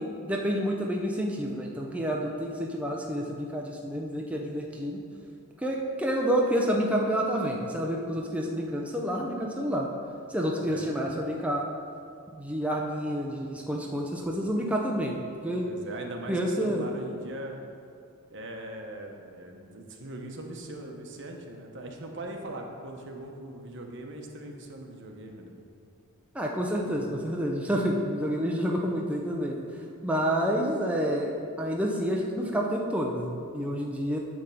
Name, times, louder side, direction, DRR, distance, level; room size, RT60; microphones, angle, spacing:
voice 1, 0.0-5.0 5.6-9.9 10.3-11.7 12.3-15.6 16.3-16.8 26.3-29.6 30.0-34.2, equal, 5° right, -1 dB, 0.6 m, -29 dB
voice 2, 10.7-11.0 15.6-17.6 18.3-25.5, right 1 dB, 60° right, 2 dB, 1.0 m, -40 dB
10.0 x 3.6 x 6.9 m, 2.4 s
head